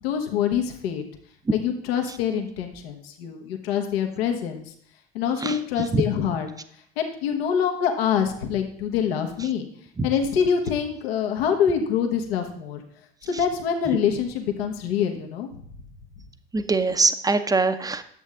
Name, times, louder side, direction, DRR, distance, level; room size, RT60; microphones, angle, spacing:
voice 1, 0.0-1.0 1.5-4.7 5.1-6.5 7.0-9.7 10.0-12.8 13.2-15.5, left 8 dB, 75° left, 4 dB, 1.2 m, -25 dB
voice 2, 16.5-18.0, right 3 dB, 10° right, 10 dB, 0.7 m, -22 dB
11.0 x 7.3 x 3.6 m, 0.64 s
hypercardioid pair, 70°, 31 cm